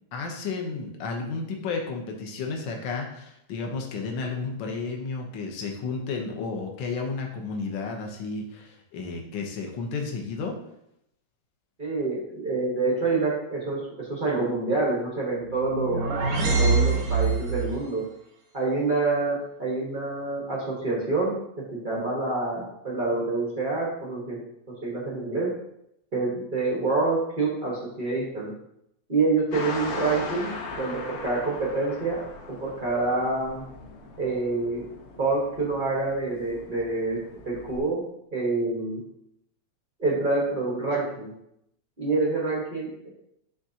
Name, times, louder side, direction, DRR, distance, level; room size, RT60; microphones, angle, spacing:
voice 1, 0.1-10.6, left 4 dB, 75° left, 2 dB, 1.1 m, -32 dB
voice 2, 11.8-16.0 16.3-18.0 18.5-21.4 21.7-24.4 24.7-25.5 26.1-28.5 29.1-33.6 34.2-34.9 35.2-37.2 37.4-38.0 38.3-39.0 40.0-41.3 42.0-43.1, right 3 dB, 70° right, -5 dB, 0.4 m, -27 dB
sound 1, 15.5-17.8, right 4 dB, 90° right, 2.6 m, -24 dB
sound 2, 29.5-37.8, left 4 dB, 60° left, 1.6 m, -39 dB
10.5 x 3.6 x 2.8 m, 0.79 s
omnidirectional pair, 3.3 m